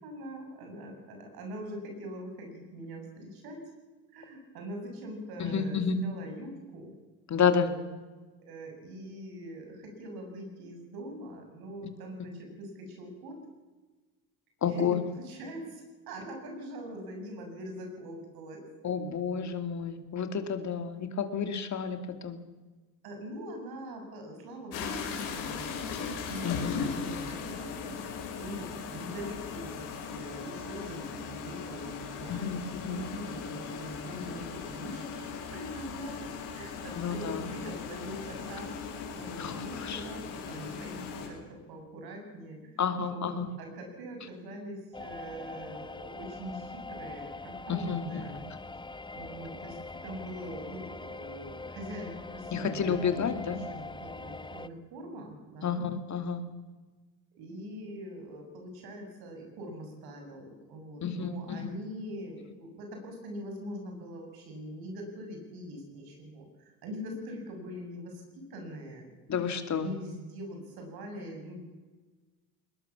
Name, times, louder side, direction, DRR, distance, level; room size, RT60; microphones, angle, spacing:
voice 1, 0.0-3.6 4.1-6.9 7.3-7.7 8.4-13.4 14.6-14.8 15.2-18.6 23.0-32.5 32.9-38.8 39.1-43.3 43.6-48.4 49.1-53.2 53.4-55.8 57.4-69.1 69.7-71.8, equal, 75° right, 3 dB, 7.5 m, -43 dB
voice 2, 5.4-6.0 7.3-7.7 14.6-15.0 18.8-22.4 26.4-27.2 32.3-33.0 36.9-37.5 39.4-40.1 42.8-43.5 47.7-48.3 52.5-53.6 55.6-56.4 61.0-61.7 62.4-62.5 69.3-69.9, left 6 dB, 50° left, 7 dB, 2.8 m, -31 dB
sound 1, 24.7-41.3, left 5 dB, 80° left, 6.1 m, -38 dB
sound 2, 44.9-54.7, left 3 dB, 10° left, 0.9 m, -43 dB
21.0 x 20.5 x 7.3 m, 1.3 s
supercardioid pair, 80°, 37 cm